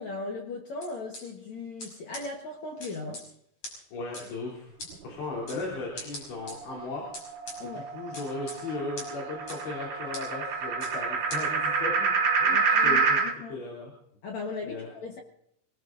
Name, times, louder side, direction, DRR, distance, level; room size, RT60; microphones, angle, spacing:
voice 1, 0.0-3.3 7.6-7.8 12.5-13.6 14.2-15.2, left 3 dB, 65° left, 1 dB, 1.8 m, -38 dB
sound 1, 0.8-1.2 1.8-1.9 2.1-2.2 2.8-3.2 3.6-3.7 4.1-4.2 4.8-4.9 5.5-5.6 6.0-6.5 7.1-7.6 8.1-8.6 9.0-9.1 9.5-9.6 10.1-10.2 10.8-10.9 11.3-11.4, left 1 dB, 40° left, 6.4 m, -39 dB
voice 2, 3.9-4.7 5.0-7.0 7.6-12.1 12.4-13.2 13.5-13.9 14.6-14.9, left 3 dB, 80° left, -4 dB, 5.5 m, -36 dB
sound 2, 6.6-13.3, right 4 dB, 55° right, 2.2 m, -28 dB
27.5 x 19.5 x 2.6 m, 0.74 s
omnidirectional pair, 4.9 m